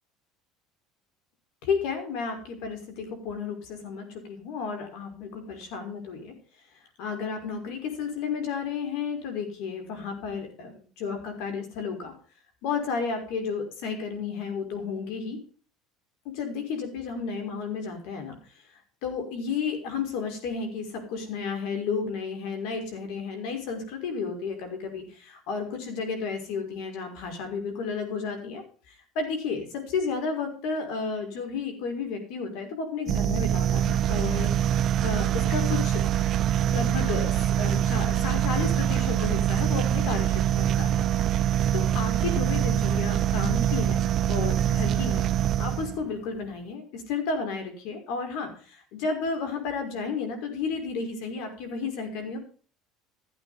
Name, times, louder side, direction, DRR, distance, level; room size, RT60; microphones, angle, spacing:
voice 1, 1.6-6.3 6.7-12.1 12.6-15.4 16.3-18.6 19.0-34.5 35.0-36.0 36.5-41.2 41.7-44.0 44.3-45.3 45.6-52.4, left 5 dB, 75° left, 6 dB, 5.6 m, -32 dB
sound 1, 33.1-46.1, right 10 dB, 45° right, 0.6 m, -24 dB
14.5 x 9.1 x 5.1 m, 0.40 s
supercardioid pair, 120°, 0 cm